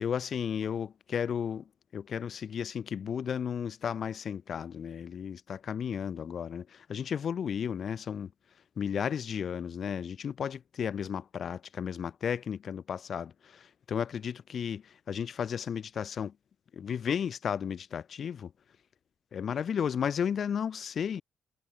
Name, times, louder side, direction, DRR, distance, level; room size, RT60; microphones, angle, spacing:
voice 1, 0.0-8.3 8.8-16.3 16.7-18.5 19.3-21.2, left 7 dB, 55° left, 0.3 m, -34 dB
cardioid pair, 90°, 0 cm